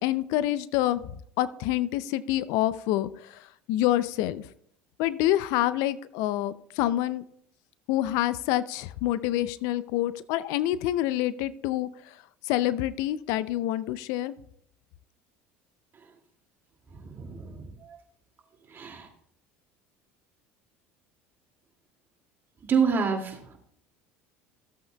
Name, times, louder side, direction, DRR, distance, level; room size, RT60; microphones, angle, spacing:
voice 1, 0.0-1.0 1.4-4.4 5.0-7.2 7.9-11.9 12.4-14.4, left 14 dB, 70° left, 16 dB, 0.4 m, -27 dB
voice 2, 16.9-18.0 18.7-19.1 22.7-23.6, right 6 dB, 35° right, 2 dB, 2.3 m, -28 dB
14.5 x 7.9 x 2.3 m, 0.69 s
hypercardioid pair, 85°, 6 cm